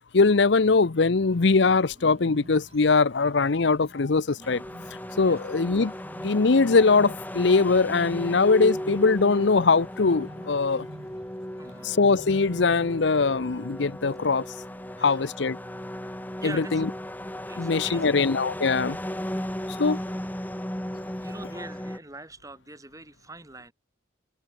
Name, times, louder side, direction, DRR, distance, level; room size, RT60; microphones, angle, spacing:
voice 1, 0.1-4.6 5.2-5.9 6.2-10.9 11.8-14.4 15.0-15.6 16.4-16.9 17.6-19.0 19.8-20.0, left 4 dB, 70° left, 0.7 m, -21 dB
Bird, 1.2-13.4, equal, 35° right, 4.1 m, -49 dB
sound 1, 4.4-22.0, equal, 10° left, 2.4 m, -36 dB
voice 2, 11.6-11.9 15.0-15.3 16.4-16.9 17.5-18.2 19.6-20.1 21.2-23.7, right 2 dB, 20° right, 5.9 m, -43 dB
head